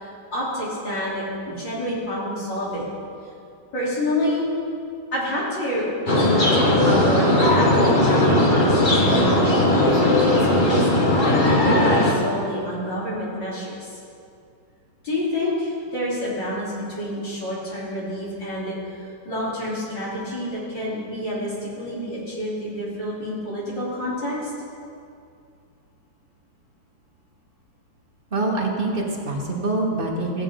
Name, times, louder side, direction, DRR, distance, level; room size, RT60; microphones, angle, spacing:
voice 1, 0.0-2.8 3.7-4.5 5.1-5.9 6.2-9.3 9.7-13.8 15.0-18.7 19.3-24.5, left 1 dB, 75° left, -9 dB, 4.2 m, -28 dB
sound 1, 6.1-12.1, left 1 dB, 30° left, 1.2 m, -18 dB
voice 2, 28.3-30.4, right 2 dB, 35° right, -1 dB, 1.3 m, -25 dB
15.5 x 9.0 x 3.7 m, 2.4 s
omnidirectional pair, 2.0 m